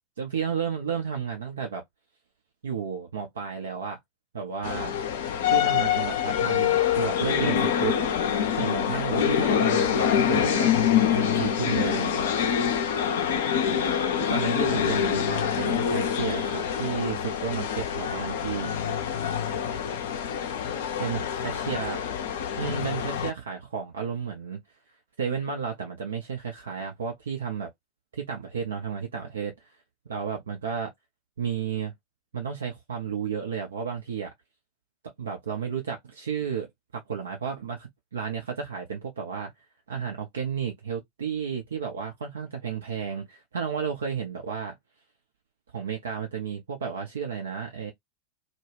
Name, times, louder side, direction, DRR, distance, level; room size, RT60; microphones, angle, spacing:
voice 1, 0.2-1.8 2.6-4.0 4.3-4.9 5.5-8.0 8.5-10.7 11.1-12.3 14.1-19.0 21.0-22.0 22.6-24.6 25.2-27.7 28.1-29.5 30.1-30.9 31.4-31.9 32.3-34.3 35.2-39.5 39.9-44.8 45.7-47.9, right 6 dB, 65° right, 0.6 m, -32 dB
sound 1, 4.6-23.3, left 8 dB, 60° left, 0.5 m, -25 dB
2.3 x 2.1 x 3.2 m
figure-of-eight pair, 90°, 0 cm